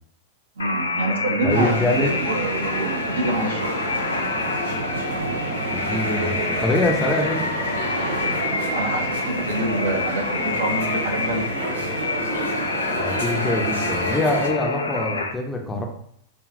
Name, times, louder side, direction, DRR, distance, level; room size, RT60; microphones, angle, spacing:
sound 1, 0.6-15.3, left 3 dB, 75° left, 0.4 m, -27 dB
voice 1, 0.6-3.7 8.7-11.5, right 2 dB, 65° right, 1 dB, 0.9 m, -26 dB
voice 2, 1.4-2.1 5.6-7.5 12.9-15.9, left 2 dB, 10° left, 2 dB, 0.7 m, -24 dB
sound 2, 1.5-14.5, right 2 dB, 85° right, 1.5 m, -29 dB
5.1 x 2.4 x 2.5 m, 0.65 s
figure-of-eight pair, 90°, 0 cm